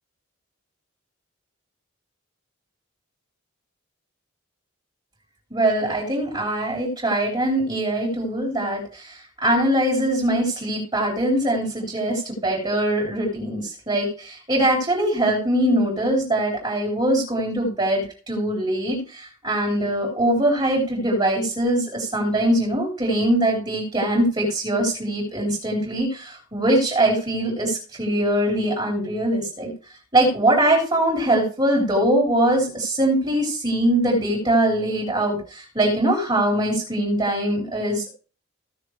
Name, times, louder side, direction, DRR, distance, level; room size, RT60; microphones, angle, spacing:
voice 1, 5.5-29.7 30.1-38.1, right 1 dB, 25° right, -1 dB, 3.8 m, -22 dB
16.5 x 6.7 x 3.3 m, 0.37 s
head